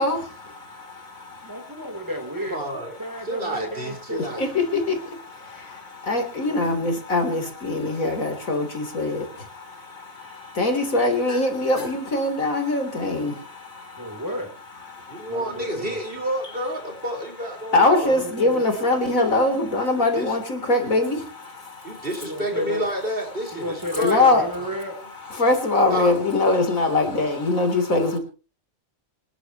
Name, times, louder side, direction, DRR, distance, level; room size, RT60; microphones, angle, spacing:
voice 1, 0.0-1.7 4.2-14.2 14.9-15.4 17.7-22.1 24.0-24.4 25.2-28.2, left 2 dB, 90° left, 4.0 m, -23 dB
voice 2, 1.4-2.6 3.0-4.4 6.5-6.7 14.0-14.5 15.3-16.0 18.0-18.6 22.2-22.9 23.5-25.0, equal, 15° right, 3.6 m, -32 dB
voice 3, 2.5-2.9 3.2-4.4 15.1-18.2 19.0-19.1 20.0-20.4 21.8-24.7 25.0-25.1 25.9-26.1, right 1 dB, 40° right, 5.2 m, -30 dB
26.5 x 11.5 x 3.1 m
omnidirectional pair, 1.4 m